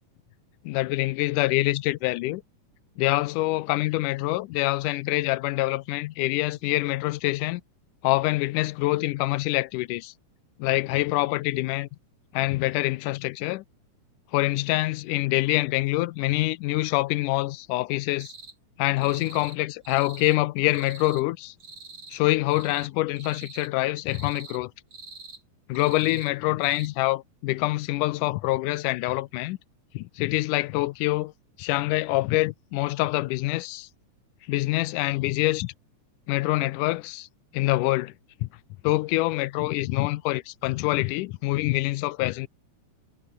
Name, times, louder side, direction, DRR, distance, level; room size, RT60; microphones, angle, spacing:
voice 1, 0.7-2.4 3.0-7.6 8.0-10.1 10.6-11.9 12.3-13.6 14.3-18.3 18.8-21.5 22.1-24.7 25.7-29.6 29.9-31.3 31.6-33.9 34.5-35.7 36.3-37.3 37.5-38.1 38.4-38.5 38.8-42.5, left 19 dB, 90° left, 2.2 m, -25 dB
sound 1, 18.2-18.5 19.0-19.6 19.8-20.4 20.7-21.2 21.6-22.2 22.5-22.9 23.2-23.7 24.1-24.6 24.9-25.4 25.7-26.3 26.6-26.9, right 4 dB, 40° right, 5.5 m, -45 dB
omnidirectional pair, 3.6 m